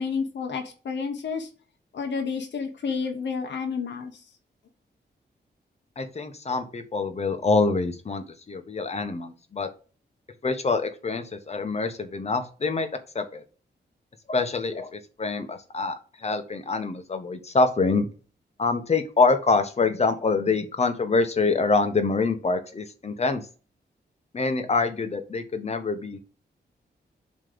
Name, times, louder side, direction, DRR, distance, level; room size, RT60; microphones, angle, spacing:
voice 1, 0.0-1.5 1.9-4.2, left 5 dB, 85° left, 3 dB, 1.2 m, -30 dB
voice 2, 6.0-9.7 10.4-12.9 13.1-13.4 14.3-18.1 18.6-23.4 24.3-26.2, left 3 dB, 35° left, 8 dB, 1.1 m, -25 dB
7.6 x 3.3 x 5.1 m, 0.36 s
wide cardioid pair, 135°, 18 cm